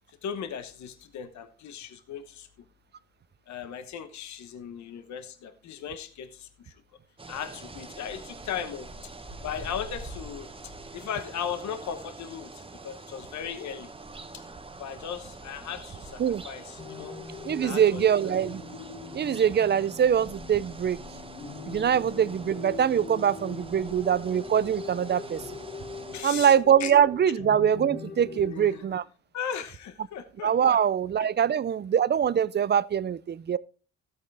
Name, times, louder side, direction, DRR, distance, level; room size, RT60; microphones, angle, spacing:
voice 1, 0.1-2.5 3.5-6.7 7.3-9.1 9.4-13.9 14.3-14.5 14.8-17.2 17.6-18.3 21.9-22.0 26.1-26.5 26.8-26.9 28.4-28.9 29.3-30.5 31.2-31.3, left 8 dB, 65° left, 1.1 m, -37 dB
sound 1, 7.2-26.2, right 2 dB, 20° right, 1.2 m, -44 dB
sound 2, 16.8-28.8, left 5 dB, 35° left, 2.4 m, -42 dB
voice 2, 17.4-18.6 19.1-21.0 21.7-25.4 26.2-29.0 30.4-33.6, right 8 dB, 35° right, 0.5 m, -23 dB
13.5 x 8.5 x 3.3 m
cardioid pair, 90°, 30 cm